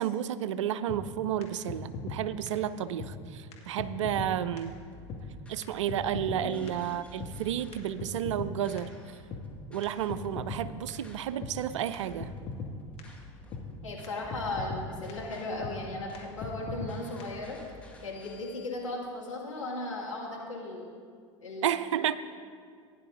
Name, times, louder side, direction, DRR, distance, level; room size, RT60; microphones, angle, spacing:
voice 1, 0.0-4.8 5.5-8.9 9.7-12.3 21.6-22.2, right 10 dB, 70° right, 15 dB, 0.5 m, -31 dB
sound 1, 0.9-1.0 1.4-1.5 1.7-2.2 2.5-2.6 3.0-3.1 3.5-3.6 3.8-4.3 4.6-4.7 5.1-5.2 5.6-5.7 5.9-6.4 6.7-6.8 7.2-7.3 7.7-8.5 8.8-8.9 9.3-9.4 9.8-9.9 10.1-10.6 10.9-11.0 11.4-11.5 11.9-12.0 12.2-12.7 13.0-13.1 13.5-13.6 14.0-14.1 14.3-14.8 15.1-15.2 15.6-15.7 16.1-16.2 16.4-16.9 17.2-17.3, left 4 dB, 40° left, 1.8 m, -38 dB
sound 2, 4.1-18.7, left 2 dB, 5° left, 1.5 m, -53 dB
voice 2, 13.8-17.6 18.0-20.9 21.4-21.7, left 2 dB, 85° left, -3 dB, 2.2 m, -36 dB
16.5 x 10.0 x 2.6 m, 2.1 s
figure-of-eight pair, 80°, 16 cm